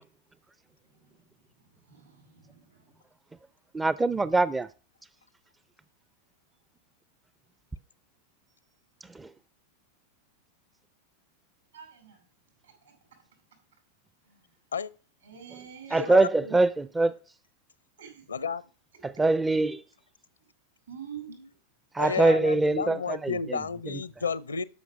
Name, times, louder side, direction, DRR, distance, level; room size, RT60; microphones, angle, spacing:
voice 1, 1.9-3.0 11.7-12.2 12.6-12.9 14.2-14.4 15.2-16.1 18.0-18.2 20.9-21.3, right 8 dB, 70° right, 4.9 m, -46 dB
voice 2, 3.7-4.7 9.2-9.3 15.9-17.1 19.0-19.8 21.9-23.3, right 2 dB, 10° right, 0.4 m, -23 dB
voice 3, 16.0-16.6 18.3-18.6 21.3-21.5 22.0-24.6, left 5 dB, 75° left, 0.6 m, -32 dB
12.0 x 6.1 x 5.9 m
figure-of-eight pair, 90°, 0 cm